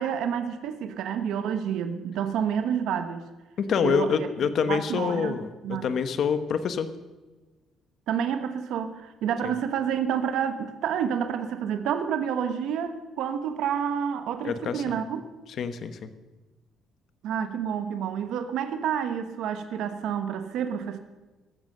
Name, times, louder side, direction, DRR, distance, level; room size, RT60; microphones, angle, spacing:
voice 1, 0.0-3.3 3.8-4.3 4.7-5.4 5.6-5.9 8.1-15.2 17.2-21.0, right 8 dB, 70° right, 8 dB, 1.2 m, -29 dB
voice 2, 3.6-5.5 5.8-6.9 9.4-9.5 14.4-15.0 15.6-16.1, left 6 dB, 45° left, 11 dB, 1.2 m, -26 dB
15.0 x 13.5 x 6.7 m, 1.2 s
cardioid pair, 165°, 0 cm